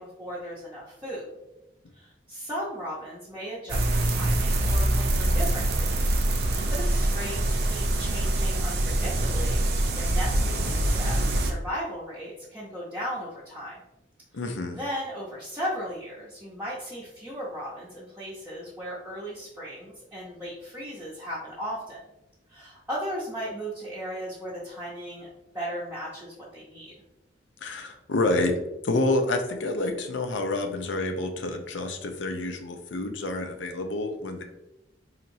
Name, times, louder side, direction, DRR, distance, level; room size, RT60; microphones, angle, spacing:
voice 1, 0.0-1.3 1.9-6.2 6.7-9.6 9.9-13.8 14.3-14.5 14.7-22.0 22.5-25.3 25.5-26.9, equal, 10° right, -9 dB, 0.7 m, -36 dB
sound 1, 3.7-11.5, right 1 dB, 60° right, 0.5 m, -24 dB
voice 2, 14.3-14.8 27.6-28.6 28.8-34.4, left 2 dB, 85° left, 6 dB, 0.5 m, -28 dB
4.2 x 2.9 x 2.6 m, 0.93 s
head